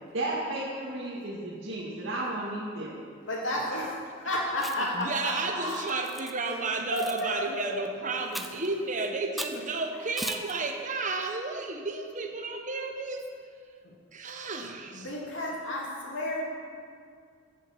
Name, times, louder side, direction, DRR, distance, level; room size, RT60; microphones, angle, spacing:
voice 1, 0.1-3.0, right 2 dB, 80° right, -8 dB, 2.2 m, -33 dB
voice 2, 3.3-6.0 6.4-6.6 6.9-7.7 14.9-16.4, left 1 dB, 80° left, -3 dB, 3.0 m, -32 dB
Chewing mastication, 4.5-5.0 5.7-6.3 7.0-7.2 8.3-8.7 9.4-9.6 10.2-10.5, equal, ahead, 0.6 m, -37 dB
voice 3, 4.8-13.2 14.1-15.1, right 3 dB, 40° right, 4 dB, 1.2 m, -32 dB
14.5 x 7.4 x 7.2 m, 2.2 s
head